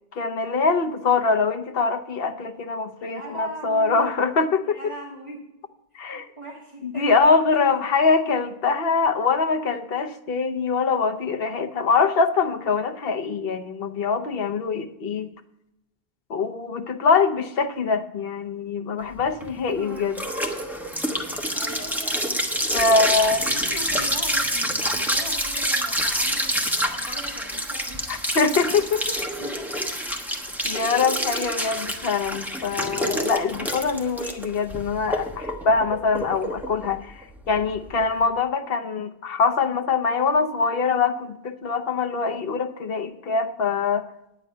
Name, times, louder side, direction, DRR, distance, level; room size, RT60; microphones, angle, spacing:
voice 1, 0.1-4.8 5.9-6.3 6.8-15.3 16.3-20.1 22.7-23.4 28.1-29.2 30.6-44.0, left 4 dB, 60° left, 8 dB, 1.1 m, -23 dB
voice 2, 3.0-4.1 4.6-5.5 6.1-7.6 19.7-20.1 21.2-22.5 23.2-28.1 29.4-29.8 30.7-31.0, right 1 dB, 30° right, -4 dB, 1.9 m, -40 dB
sound 1, 19.2-38.2, equal, ahead, 1.1 m, -27 dB
9.6 x 9.5 x 5.5 m, 0.86 s
omnidirectional pair, 1.1 m